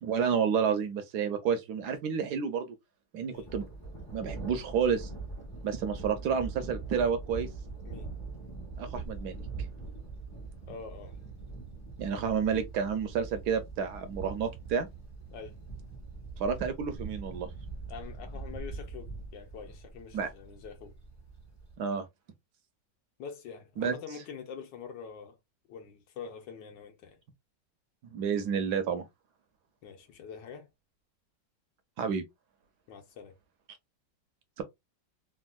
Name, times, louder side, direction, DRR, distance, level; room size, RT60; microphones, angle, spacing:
voice 1, 0.0-2.7 3.1-3.6 4.1-5.1 5.6-7.5 8.8-9.4 12.0-14.9 16.4-17.5 20.1-20.3 21.8-22.1 23.8-23.9 28.1-29.1 32.0-32.2 34.6-34.7, right 6 dB, 70° right, 1.0 m, -30 dB
Thunder, 3.3-21.8, right 4 dB, 15° left, 0.6 m, -42 dB
voice 2, 10.7-11.2 15.3-15.6 17.9-20.9 23.2-25.4 25.7-27.2 29.8-30.7 32.9-33.4, left 6 dB, 75° left, 1.5 m, -45 dB
3.5 x 2.4 x 2.2 m
omnidirectional pair, 2.0 m